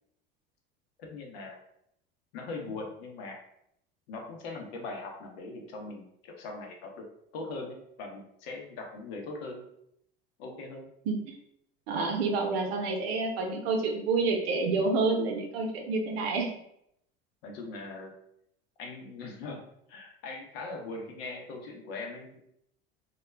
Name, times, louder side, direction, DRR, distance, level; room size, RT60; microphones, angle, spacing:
voice 1, 1.0-1.6 2.3-3.4 4.1-7.1 7.3-9.6 10.4-10.9 17.4-18.1 18.8-19.6 19.9-22.4, left 3 dB, 80° left, 2 dB, 0.7 m, -40 dB
voice 2, 11.1-11.4 11.9-16.5, right 3 dB, 80° right, 2 dB, 0.7 m, -28 dB
2.3 x 2.1 x 3.2 m, 0.74 s
hypercardioid pair, 80°, 30 cm